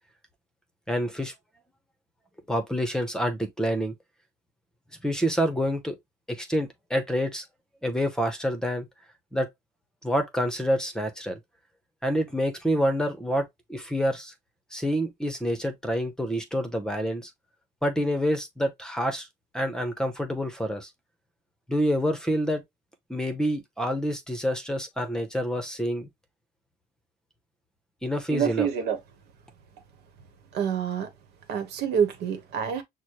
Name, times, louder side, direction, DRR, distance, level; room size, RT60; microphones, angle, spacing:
voice 1, 0.9-1.3 2.5-3.9 5.0-6.0 6.3-7.4 7.8-8.9 9.3-9.5 10.0-11.4 12.0-14.3 14.7-17.3 17.8-19.3 19.5-20.9 21.7-22.6 23.1-26.1 28.0-28.7, equal, 5° left, 0.9 m, -27 dB
voice 2, 28.3-29.0 30.5-31.1 31.5-32.8, right 8 dB, 80° right, 1.1 m, -27 dB
6.2 x 2.2 x 2.9 m
cardioid pair, 110°, 17 cm